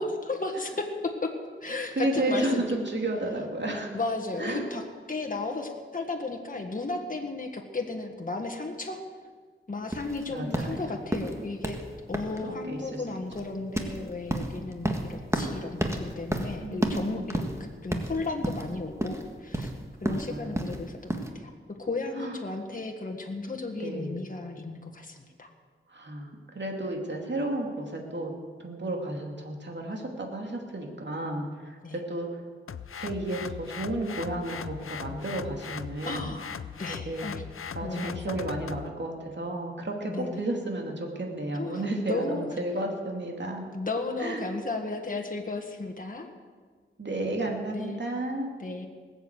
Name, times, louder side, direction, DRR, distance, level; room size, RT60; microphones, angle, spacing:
voice 1, 0.0-1.3 1.6-2.8 3.9-4.8 5.1-9.0 9.7-11.8 12.1-19.7 20.0-21.5 21.8-25.5 31.8-32.0 36.0-37.4 37.8-38.4 40.1-40.4 41.5-42.5 43.7-46.3 47.7-48.0 48.6-48.9, left 3 dB, 40° left, 3 dB, 1.6 m, -34 dB
voice 2, 2.0-3.9 4.4-4.6 10.3-10.9 12.4-13.0 13.4-13.5 16.6-17.4 20.0-20.8 22.2-22.4 23.8-24.3 25.9-28.3 28.6-32.4 33.0-36.3 36.9-37.3 37.7-43.7 44.2-44.4 47.0-48.5, right 1 dB, 60° right, 1 dB, 2.6 m, -32 dB
sound 1, 9.9-21.3, right 1 dB, 15° right, 1.6 m, -32 dB
sound 2, 32.7-38.9, left 7 dB, 90° left, 0.5 m, -39 dB
19.5 x 8.1 x 8.1 m, 1.6 s
wide cardioid pair, 80°, 21 cm